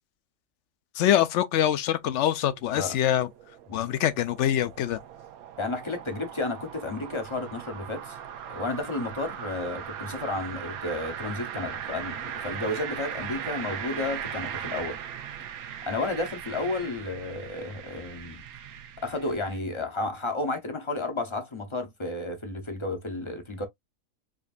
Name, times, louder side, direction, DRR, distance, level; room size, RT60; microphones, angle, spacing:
voice 1, 1.0-3.3 3.7-5.0, left 11 dB, 65° left, 0.8 m, -24 dB
sound 1, 2.0-19.6, right 9 dB, 85° right, 1.2 m, -39 dB
voice 2, 5.6-8.2 8.5-15.0 15.9-18.4 19.0-23.7, left 2 dB, 30° left, 0.6 m, -32 dB
5.0 x 2.5 x 2.4 m
omnidirectional pair, 1.5 m